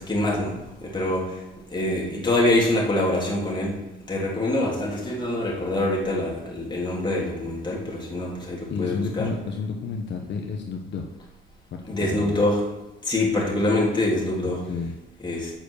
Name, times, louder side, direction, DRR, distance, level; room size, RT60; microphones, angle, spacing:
voice 1, 0.0-1.4 1.7-3.8 4.1-9.3 11.8-12.6 13.0-14.6 15.2-15.5, left 1 dB, 20° left, -3 dB, 3.4 m, -25 dB
voice 2, 8.7-11.1 11.7-12.4 14.4-14.9, left 4 dB, 65° left, 2 dB, 1.1 m, -31 dB
8.0 x 6.8 x 6.5 m, 1.0 s
cardioid pair, 90°, 20 cm